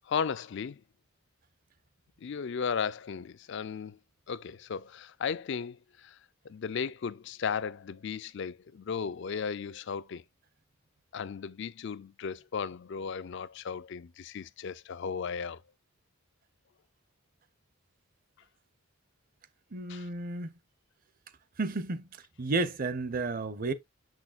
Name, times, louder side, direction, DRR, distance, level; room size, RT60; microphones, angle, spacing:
voice 1, 0.1-0.8 2.2-4.0 4.3-6.2 6.4-10.2 11.1-15.6 19.9-20.1, left 6 dB, 55° left, 0.4 m, -35 dB
voice 2, 19.7-20.6 21.6-22.1 22.4-23.7, right 3 dB, 40° right, 0.6 m, -32 dB
6.3 x 6.3 x 2.4 m
head